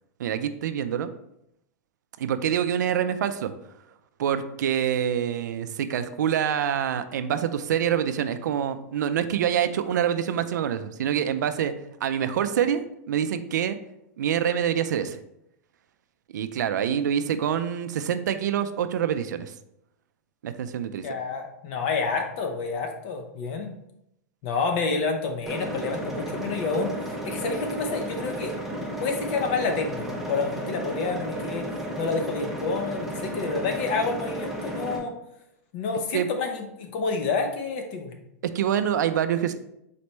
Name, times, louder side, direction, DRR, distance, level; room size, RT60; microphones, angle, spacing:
voice 1, 0.2-1.1 2.2-3.5 4.2-11.8 12.0-13.8 14.2-15.2 16.3-19.5 20.4-21.1 36.1-36.3 38.4-39.5, right 9 dB, 90° right, 10 dB, 0.4 m, -26 dB
voice 2, 21.0-23.7 24.4-26.9 27.3-28.6 29.0-31.7 32.0-35.1 35.7-38.1, left 4 dB, 40° left, 4 dB, 0.6 m, -29 dB
sound 1, 25.5-35.0, right 1 dB, 5° right, 0.5 m, -33 dB
4.2 x 3.2 x 3.0 m, 0.80 s
supercardioid pair, 165°, 9 cm